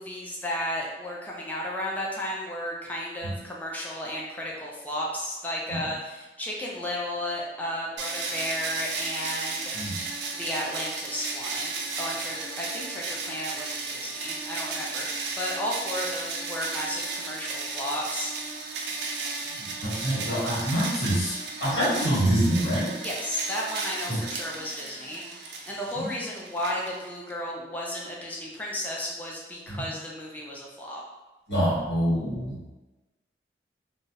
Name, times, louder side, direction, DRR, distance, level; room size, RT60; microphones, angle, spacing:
voice 1, 0.0-18.3 23.0-31.0, left 1 dB, 10° left, -4 dB, 0.3 m, -34 dB
sound 1, 8.0-27.3, right 4 dB, 70° right, 0.4 m, -34 dB
voice 2, 19.6-22.9 24.1-24.2 25.9-26.1 29.7-29.8 31.5-32.6, equal, 85° left, -9 dB, 1.2 m, -26 dB
2.2 x 2.0 x 2.7 m, 1.1 s
head